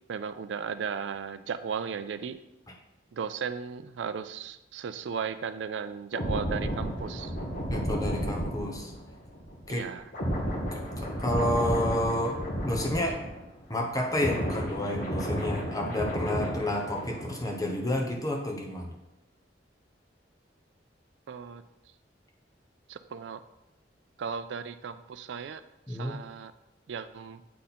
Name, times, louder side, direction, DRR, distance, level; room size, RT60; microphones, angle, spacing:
voice 1, 0.1-2.4 3.1-7.4 9.7-10.0 16.6-16.7 21.3-21.6 22.9-23.4 24.2-25.6 25.9-26.5 26.9-27.4, right 6 dB, 75° right, 11 dB, 0.4 m, -36 dB
sound 1, 6.1-13.6 13.9-17.6 17.9-18.1, equal, 50° left, 1.6 m, -32 dB
voice 2, 7.7-8.9 9.7-9.9 10.7-13.2 13.7-18.9 25.9-26.2, left 1 dB, 20° left, 1 dB, 1.1 m, -30 dB
8.4 x 3.8 x 4.3 m, 0.91 s
head